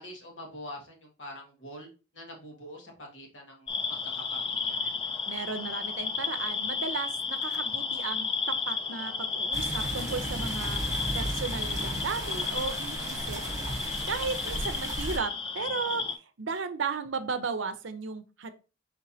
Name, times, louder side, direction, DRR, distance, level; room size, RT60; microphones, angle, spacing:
voice 1, 0.0-1.9 2.1-4.8, left 1 dB, 70° left, 0 dB, 1.6 m, -45 dB
sound 1, 3.7-16.1, left 5 dB, 25° left, 0.4 m, -33 dB
voice 2, 5.3-8.3 8.7-10.8 11.1-13.4 13.8-18.5, right 5 dB, 70° right, 10 dB, 0.6 m, -35 dB
sound 2, 9.5-15.2, right 1 dB, 20° right, 1.0 m, -35 dB
4.4 x 4.3 x 2.7 m, 0.32 s
head